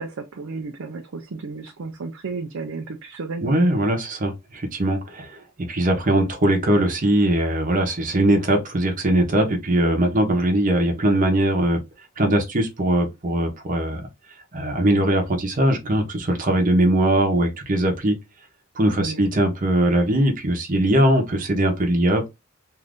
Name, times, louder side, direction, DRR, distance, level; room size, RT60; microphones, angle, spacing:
voice 1, 0.0-3.6 19.0-19.2, right 3 dB, 80° right, 0.5 m, -33 dB
voice 2, 3.4-11.8 12.2-14.1 14.5-18.2 18.8-22.3, right 1 dB, 40° right, 0.8 m, -20 dB
2.7 x 2.5 x 3.4 m
head